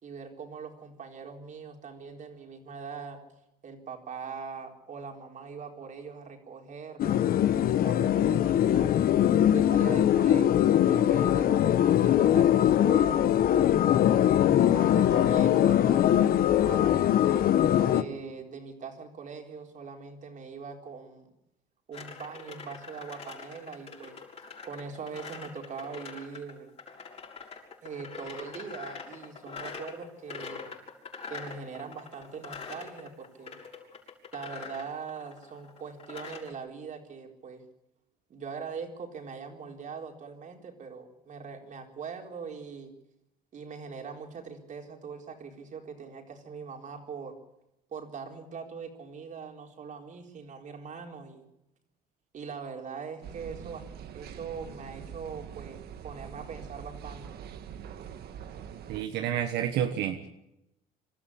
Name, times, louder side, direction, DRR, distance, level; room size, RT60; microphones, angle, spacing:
voice 1, 0.0-3.2 3.6-7.3 7.6-8.9 9.5-13.4 14.0-17.6 17.9-21.3 21.9-24.2 24.6-26.7 27.8-30.7 31.3-33.6 34.3-37.6 38.3-42.9 43.5-47.4 47.9-51.5 52.3-53.9 54.1-57.4, right 5 dB, 50° right, 3 dB, 4.3 m, -41 dB
sound 1, 7.0-18.0, left 11 dB, 60° left, 1.0 m, -22 dB
sound 2, 21.9-36.5, left 5 dB, 40° left, 6.6 m, -44 dB
sound 3, 53.2-59.0, right 8 dB, 70° right, 1.7 m, -44 dB
voice 2, 58.9-60.3, right 10 dB, 85° right, 6 dB, 1.4 m, -29 dB
26.0 x 13.5 x 8.6 m, 0.85 s
cardioid pair, 110°, 17 cm